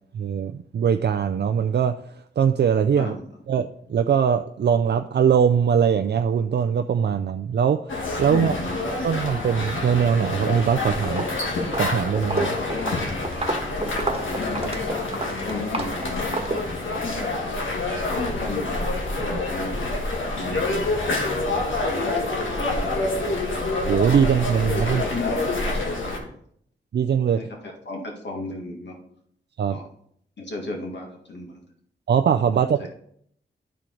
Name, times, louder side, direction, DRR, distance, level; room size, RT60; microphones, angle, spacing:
voice 1, 0.1-1.9 2.4-3.2 3.5-8.5 9.0-11.2 11.8-12.6 19.3-19.4 23.9-25.0 26.9-27.4 29.6-29.8 32.1-32.9, right 7 dB, 60° right, 6 dB, 0.4 m, -21 dB
sound 1, 7.9-26.2, left 2 dB, 85° left, 1.5 m, -27 dB
voice 2, 8.3-8.8 12.4-13.0 14.2-16.3 17.0-17.5 18.0-20.6 21.5-22.3 22.7-23.3 24.2-24.3 24.8-26.3 27.4-29.0 29.7-29.9 30.4-31.5 32.8-32.9, left 2 dB, 65° left, 0 dB, 2.0 m, -35 dB
Walk footsteps, 10.4-10.7 11.0-17.1, right 2 dB, 30° right, 1.3 m, -31 dB
11.0 x 4.5 x 3.9 m, 0.68 s
cardioid pair, 50°, 20 cm